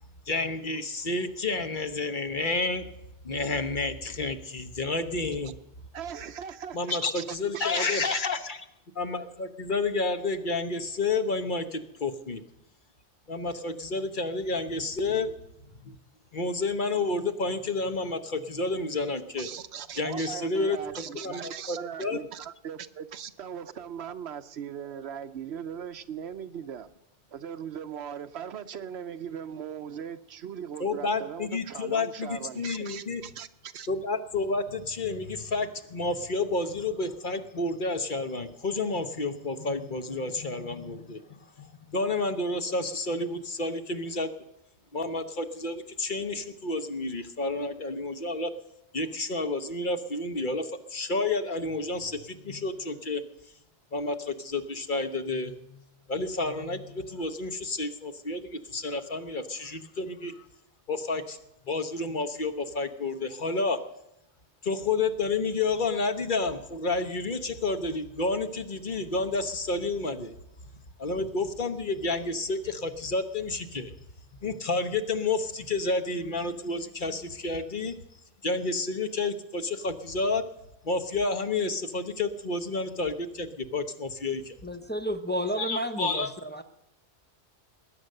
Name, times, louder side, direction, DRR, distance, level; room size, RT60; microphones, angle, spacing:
voice 1, 0.3-2.9 3.2-5.5 6.7-8.6 8.9-12.4 13.3-15.9 16.3-19.5 20.0-20.8 21.1-22.3 30.8-33.2 33.9-44.3 44.9-48.5 48.9-53.2 53.9-55.8 56.1-60.5 60.9-61.4 61.6-63.8 64.6-70.3 71.0-73.9 74.4-78.0 78.4-80.4 80.8-84.5 85.3-86.3, left 3 dB, 50° left, 8 dB, 1.1 m, -30 dB
voice 2, 5.9-8.2 19.4-26.9 27.3-33.9, right 8 dB, 70° right, 12 dB, 1.0 m, -39 dB
voice 3, 84.6-86.6, equal, 10° left, 7 dB, 0.7 m, -31 dB
20.0 x 9.5 x 6.6 m, 0.85 s
omnidirectional pair, 1.2 m